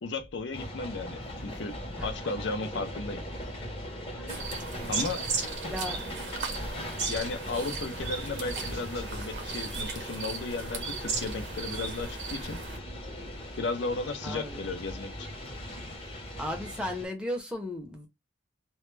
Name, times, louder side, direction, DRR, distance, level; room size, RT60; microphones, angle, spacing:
voice 1, 0.0-3.2 4.9-5.2 7.1-12.6 13.6-15.3, left 3 dB, 70° left, 0.5 m, -35 dB
sound 1, 0.5-17.1, equal, 30° left, 0.7 m, -39 dB
sound 2, 4.3-12.8, right 4 dB, 60° right, 0.7 m, -36 dB
voice 2, 5.6-6.1 14.2-14.7 16.4-18.1, equal, 5° right, 0.6 m, -35 dB
2.2 x 2.0 x 3.1 m
head